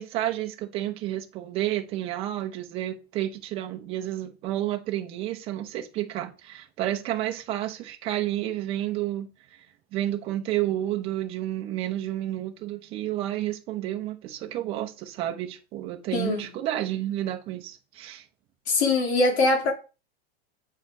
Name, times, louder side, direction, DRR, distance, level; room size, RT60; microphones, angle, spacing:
voice 1, 0.0-9.3 9.9-18.2, right 13 dB, 20° right, 0.8 m, -30 dB
voice 2, 16.1-16.5 18.7-19.7, left 3 dB, 90° left, 2.6 m, -22 dB
7.9 x 5.6 x 4.7 m
supercardioid pair, 180°, 31 cm